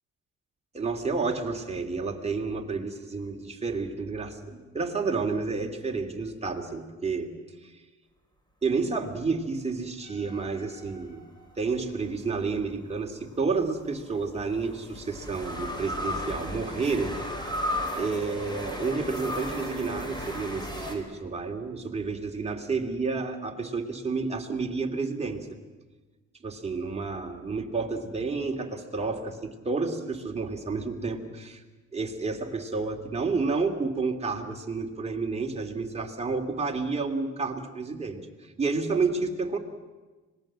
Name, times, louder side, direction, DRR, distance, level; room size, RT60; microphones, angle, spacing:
voice 1, 0.7-7.3 7.6-7.8 8.6-11.2 11.6-17.2 17.5-17.6 18.0-25.6 26.4-31.6 31.9-39.6, right 4 dB, 20° right, 2 dB, 2.9 m, -30 dB
sound 1, 10.0-11.5 13.4-20.9, left 1 dB, 15° left, 4.8 m, -35 dB
25.5 x 19.5 x 7.6 m, 1.3 s
cardioid pair, 90°, 30 cm